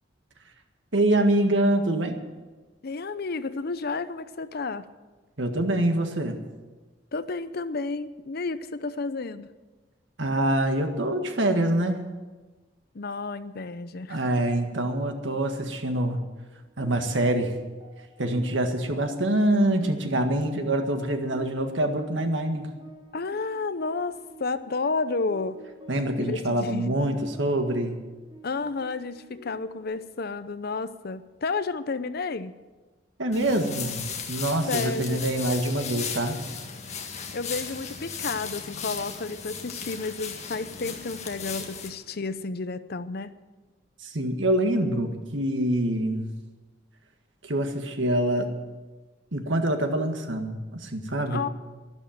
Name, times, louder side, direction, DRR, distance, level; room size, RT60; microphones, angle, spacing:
voice 1, 0.9-2.2 5.4-6.4 10.2-12.1 14.1-16.2 16.8-17.5 18.2-22.7 25.9-28.0 33.2-36.4 44.0-46.3 47.4-48.5 49.3-51.4, right 1 dB, 75° right, 5 dB, 1.8 m, -25 dB
voice 2, 2.8-4.9 7.1-9.5 12.9-14.4 23.1-25.6 26.2-27.2 28.4-32.6 34.7-35.2 37.3-43.4 51.3-51.5, left 4 dB, 55° left, 13 dB, 0.7 m, -31 dB
sound 1, 16.3-29.8, right 3 dB, 25° right, 3.9 m, -51 dB
sound 2, 33.3-41.9, left 6 dB, 35° left, 1.8 m, -36 dB
12.5 x 12.0 x 7.7 m, 1.3 s
head